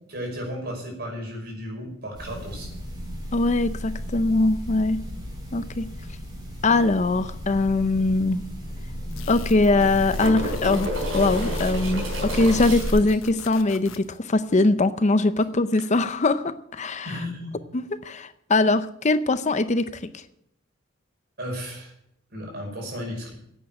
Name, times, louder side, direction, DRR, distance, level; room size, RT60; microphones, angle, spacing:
voice 1, 0.1-2.7 17.0-17.6 21.4-21.9 22.3-23.3, equal, 55° right, 1 dB, 5.6 m, -34 dB
sound 1, 2.1-12.9, equal, 20° right, 4.7 m, -33 dB
voice 2, 3.3-5.0 5.5-5.9 6.6-8.4 9.3-17.2 17.7-20.2, left 2 dB, 35° left, 12 dB, 0.6 m, -22 dB
sound 2, 8.0-8.1 8.3-8.4 9.5-13.2 15.7-15.8, equal, 80° right, 4.4 m, -32 dB
sound 3, 9.1-14.2, left 4 dB, 90° left, 1.1 m, -41 dB
11.0 x 8.7 x 8.9 m, 0.73 s
head